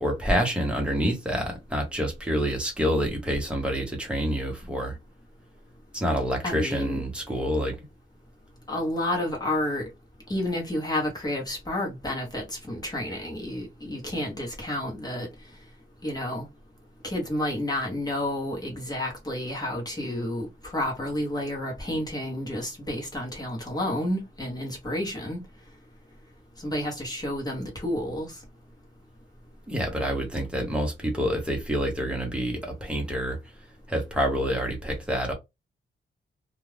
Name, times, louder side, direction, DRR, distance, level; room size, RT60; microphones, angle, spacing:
voice 1, 0.0-5.0 5.9-7.8 29.7-33.4 33.9-35.3, equal, 5° right, 1.0 m, -27 dB
voice 2, 6.4-7.0 8.7-9.8 10.3-15.3 16.0-16.5 17.0-25.4 26.6-28.4, left 1 dB, 20° left, 1.0 m, -30 dB
2.5 x 2.3 x 3.2 m
wide cardioid pair, 150°, 20 cm